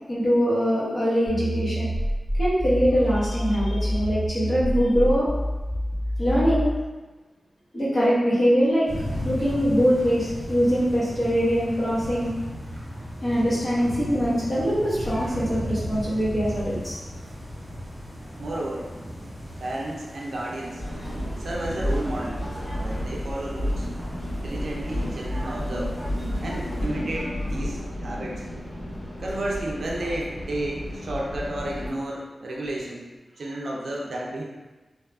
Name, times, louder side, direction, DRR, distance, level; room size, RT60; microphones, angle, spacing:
voice 1, 0.1-1.9 2.4-5.3 6.2-6.7 7.7-8.9 9.2-12.3 13.2-17.0, equal, 35° left, -10 dB, 1.0 m, -23 dB
sound 1, 1.3-6.7, equal, 15° left, 1.0 m, -27 dB
sound 2, 8.9-26.9, equal, 40° right, 1.0 m, -36 dB
voice 2, 18.4-18.9 19.6-20.8 21.4-22.4 22.7-23.9 24.4-26.0 26.4-28.4 29.2-33.0 33.4-34.4, right 1 dB, 80° right, -3 dB, 0.4 m, -32 dB
sound 3, 20.8-31.9, equal, 70° left, 1.4 m, -31 dB
2.7 x 2.3 x 2.3 m, 1.2 s
wide cardioid pair, 130°, 0 cm